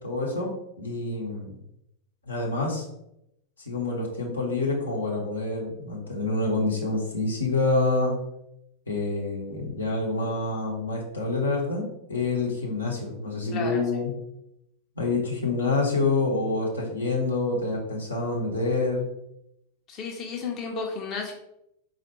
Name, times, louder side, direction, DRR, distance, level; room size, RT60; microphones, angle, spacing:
voice 1, 0.0-1.6 2.3-2.9 3.7-8.2 8.9-14.1 15.0-19.1, left 3 dB, 75° left, -1 dB, 0.8 m, -27 dB
voice 2, 13.5-13.8 19.9-21.3, left 5 dB, 30° left, 0 dB, 0.6 m, -32 dB
4.3 x 2.4 x 2.9 m, 0.81 s
figure-of-eight pair, 90°, 0 cm